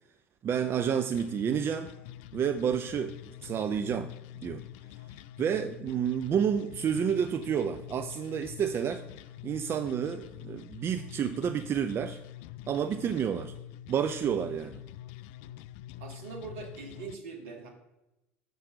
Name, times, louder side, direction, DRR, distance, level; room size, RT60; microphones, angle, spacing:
voice 1, 0.4-1.9 2.3-4.1 4.4-4.6 5.4-9.0 9.4-12.2 12.7-13.5 13.9-14.8, right 8 dB, 35° right, 8 dB, 0.5 m, -30 dB
sound 1, 1.1-17.1, left 12 dB, 60° left, 0.3 m, -46 dB
voice 2, 16.0-17.7, right 5 dB, 65° right, 1 dB, 2.1 m, -42 dB
7.4 x 5.4 x 6.4 m, 0.94 s
figure-of-eight pair, 70°, 7 cm